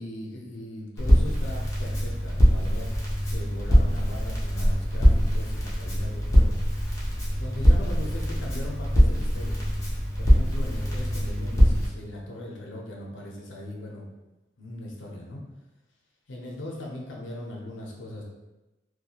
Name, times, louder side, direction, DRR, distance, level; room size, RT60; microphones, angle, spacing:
voice 1, 0.0-2.9 3.2-9.6 10.2-14.1 14.6-15.4 16.3-18.2, left 1 dB, 85° left, -1 dB, 0.6 m, -39 dB
Crackle, 1.0-11.9, equal, 15° left, 0.5 m, -22 dB
2.8 x 2.2 x 2.3 m, 1.0 s
head